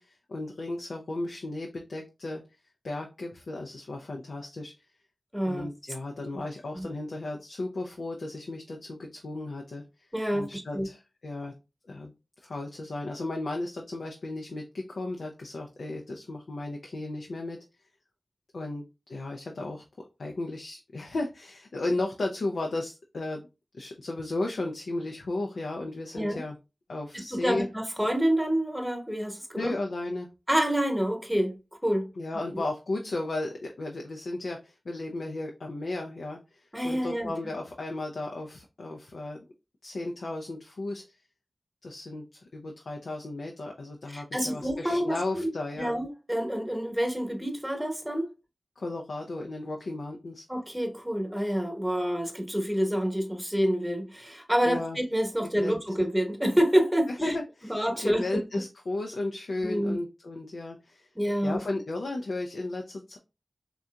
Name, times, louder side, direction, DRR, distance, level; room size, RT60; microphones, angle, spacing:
voice 1, 0.0-2.4 2.8-4.7 5.4-9.8 10.3-11.5 11.9-12.1 12.4-17.6 18.5-19.8 20.2-23.4 23.7-26.6 26.9-27.7 29.5-30.3 32.2-39.4 39.8-41.0 41.8-45.9 48.8-50.4 54.7-55.0 55.4-55.7 57.1-61.1 61.4-63.2, left 2 dB, 85° left, 0.4 m, -34 dB
voice 2, 5.3-5.7 6.3-6.4 6.7-6.9 10.1-10.9 26.1-26.4 27.1-29.7 30.5-32.1 32.5-32.6 36.7-37.3 44.1-48.3 50.5-57.4 57.7-58.4 59.6-60.0 61.1-61.6, equal, 5° right, 1.0 m, -28 dB
3.7 x 2.7 x 2.2 m
cardioid pair, 50°, 0 cm